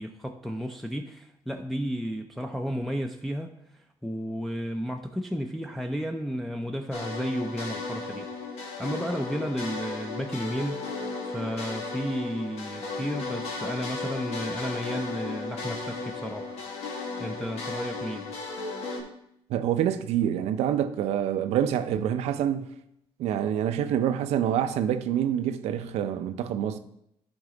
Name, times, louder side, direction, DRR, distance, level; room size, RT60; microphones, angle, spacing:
voice 1, 0.0-16.6 17.2-18.3, equal, ahead, 0.6 m, -33 dB
sound 1, 6.9-19.0, left 3 dB, 80° left, 1.3 m, -35 dB
voice 2, 19.5-22.7 23.2-26.8, right 10 dB, 85° right, 0.5 m, -26 dB
10.5 x 4.0 x 3.8 m
cardioid pair, 70°, 11 cm